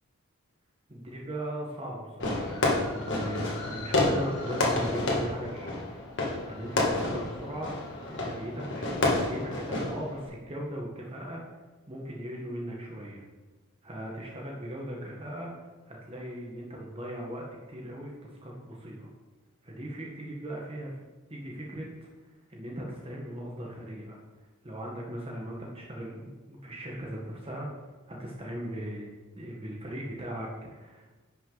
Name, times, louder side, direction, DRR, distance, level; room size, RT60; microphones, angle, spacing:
voice 1, 0.9-6.0 6.4-7.7 8.1-11.4 11.9-13.2 13.8-19.1 19.6-21.0 21.3-27.7 28.1-29.1 29.4-31.1, right 1 dB, 25° right, -2 dB, 1.2 m, -38 dB
Fireworks, 2.2-10.3, left 2 dB, 55° left, 1.8 m, -30 dB
10.5 x 6.1 x 3.9 m, 1.2 s
head